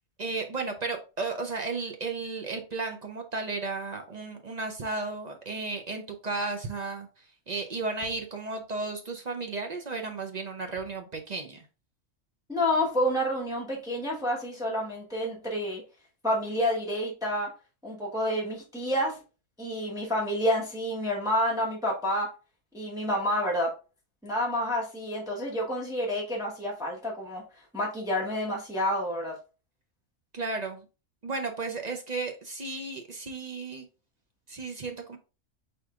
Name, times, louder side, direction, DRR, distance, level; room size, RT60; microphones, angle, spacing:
voice 1, 0.2-11.7 30.3-30.9 31.2-33.9 34.5-35.2, right 3 dB, 45° right, 4 dB, 0.6 m, -34 dB
voice 2, 12.5-15.8 16.2-17.5 17.8-19.2 19.6-22.3 22.7-23.7 24.2-27.4 27.7-29.3, equal, 5° right, -3 dB, 1.1 m, -29 dB
4.9 x 4.3 x 2.4 m, 0.32 s
omnidirectional pair, 1.3 m